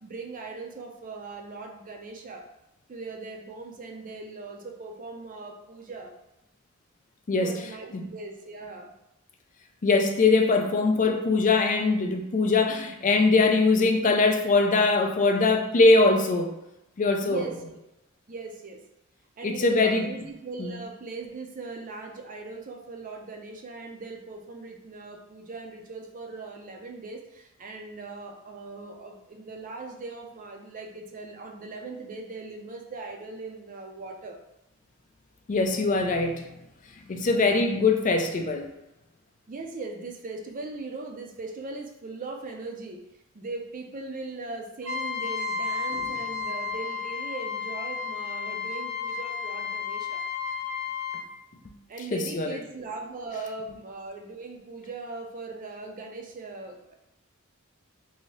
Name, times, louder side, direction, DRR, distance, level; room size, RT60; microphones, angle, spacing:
voice 1, 0.0-2.5 2.9-6.1 7.4-8.9 17.2-17.8 18.3-18.8 19.4-34.4 37.2-37.7 39.5-43.0 43.3-50.2 51.9-56.9, right 3 dB, 40° right, 2 dB, 0.5 m, -39 dB
voice 2, 9.8-16.5 17.0-17.4 19.4-20.1 20.6-20.8 35.5-36.5 37.1-38.7 52.1-52.6, left 3 dB, 35° left, 4 dB, 0.4 m, -22 dB
Trumpet, 44.8-51.2, left 5 dB, 70° right, 0.8 m, -32 dB
2.7 x 2.7 x 3.1 m, 0.92 s
head